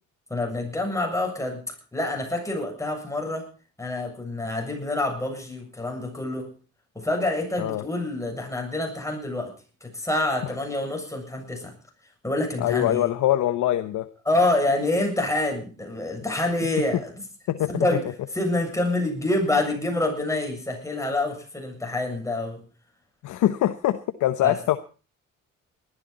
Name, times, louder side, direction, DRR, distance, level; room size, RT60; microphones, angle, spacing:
voice 1, 0.3-1.6 1.9-3.5 3.8-6.5 7.0-9.5 9.8-11.7 12.2-13.1 14.3-17.1 17.7-22.6 24.4-24.6, left 2 dB, 10° left, 2 dB, 7.2 m, -27 dB
voice 2, 12.6-14.1 17.5-18.0 23.2-24.8, left 13 dB, 80° left, 9 dB, 1.0 m, -23 dB
19.5 x 13.5 x 4.2 m, 0.35 s
cardioid pair, 90°, 30 cm